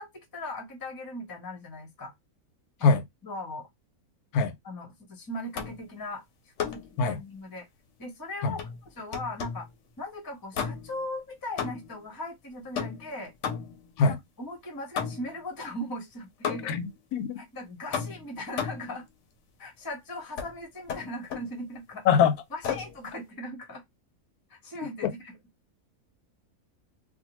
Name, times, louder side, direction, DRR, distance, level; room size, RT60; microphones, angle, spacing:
voice 1, 0.0-2.1 2.8-3.7 4.6-6.2 6.7-7.7 8.0-9.7 10.0-13.3 14.0-16.8 17.4-19.1 19.6-22.0 22.5-23.8 24.5-25.4, left 1 dB, 20° left, 0.6 m, -39 dB
sound 1, 5.5-5.9 6.6-7.0 8.6-9.7 10.5-11.1 11.6-12.0 12.7-13.9 15.0-15.4 16.4-16.9 17.9-18.9 20.4-20.5 20.9-21.5 22.6-23.0, left 7 dB, 65° left, 0.8 m, -34 dB
voice 2, 16.7-17.4 22.1-22.3 25.0-25.1, left 5 dB, 90° left, 1.1 m, -23 dB
2.6 x 2.2 x 2.9 m
omnidirectional pair, 1.6 m